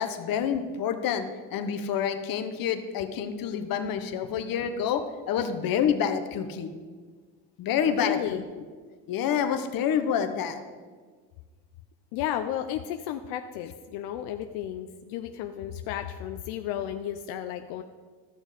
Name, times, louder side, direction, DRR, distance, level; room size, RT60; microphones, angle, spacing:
voice 1, 0.0-6.7 7.6-8.4 9.1-10.6, left 8 dB, 60° left, 8 dB, 1.2 m, -28 dB
voice 2, 7.9-8.4 12.1-17.8, left 11 dB, 90° left, 7 dB, 0.6 m, -33 dB
13.5 x 6.4 x 5.1 m, 1.5 s
cardioid pair, 100°, 39 cm